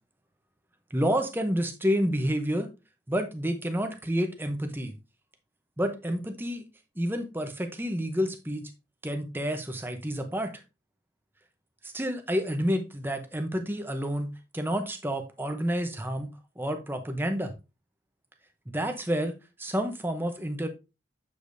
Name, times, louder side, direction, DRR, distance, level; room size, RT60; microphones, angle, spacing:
voice 1, 0.9-2.7 3.1-4.9 5.8-6.6 7.0-8.7 9.0-10.5 11.8-16.3 16.6-17.5 18.7-19.3 19.6-20.7, equal, 10° right, 6 dB, 0.8 m, -29 dB
8.0 x 5.1 x 2.7 m, 0.28 s
head